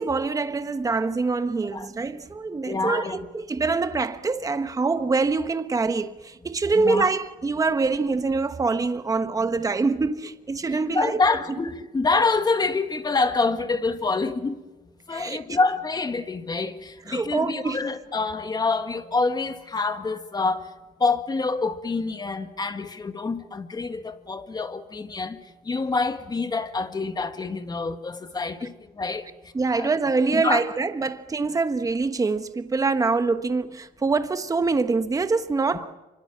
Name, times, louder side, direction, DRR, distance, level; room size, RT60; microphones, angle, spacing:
voice 1, 0.0-11.2 15.1-15.4 17.1-17.9 29.5-35.9, right 4 dB, 20° right, 1.2 m, -25 dB
voice 2, 2.7-3.2 6.8-7.1 10.9-14.6 15.1-20.7 21.0-29.3 29.8-29.9 30.3-30.6, left 3 dB, 25° left, 1.8 m, -26 dB
27.0 x 24.5 x 7.3 m
cardioid pair, 110°, 17 cm